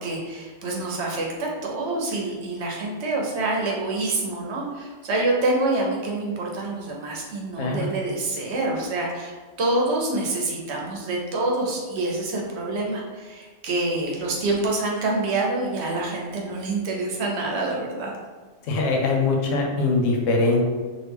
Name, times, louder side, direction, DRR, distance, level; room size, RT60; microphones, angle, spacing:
voice 1, 0.0-18.1, right 2 dB, 65° right, -1 dB, 0.9 m, -26 dB
voice 2, 18.6-20.6, left 3 dB, 85° left, 0 dB, 1.1 m, -22 dB
3.1 x 2.5 x 3.4 m, 1.4 s
omnidirectional pair, 1.3 m